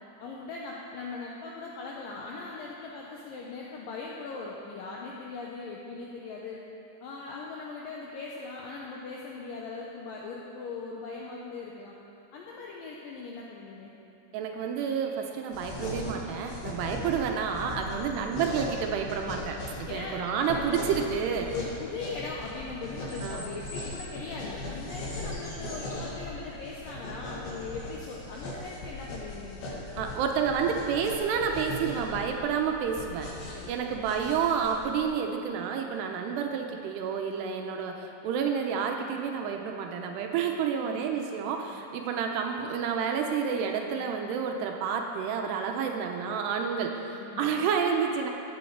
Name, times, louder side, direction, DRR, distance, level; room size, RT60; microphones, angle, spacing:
voice 1, 0.2-6.6 7.0-11.9 12.3-13.9 16.8-17.1 17.8-18.3 19.9-20.2 20.5-21.0 21.5-30.2 33.5-33.9 40.8-41.1 47.2-47.5, left 4 dB, 80° left, -3 dB, 2.0 m, -40 dB
voice 2, 14.3-21.5 23.2-23.5 30.0-33.4 33.7-48.3, right 6 dB, 80° right, 3 dB, 2.7 m, -30 dB
sound 1, 14.6-16.8 17.8-18.4 19.2-19.3 20.2-21.6 23.1-26.4 27.5-28.0 30.5-32.4, left 1 dB, ahead, 0.8 m, -49 dB
sound 2, 15.5-35.0, left 2 dB, 60° left, 3.5 m, -39 dB
15.0 x 8.7 x 4.7 m, 2.8 s
omnidirectional pair, 5.1 m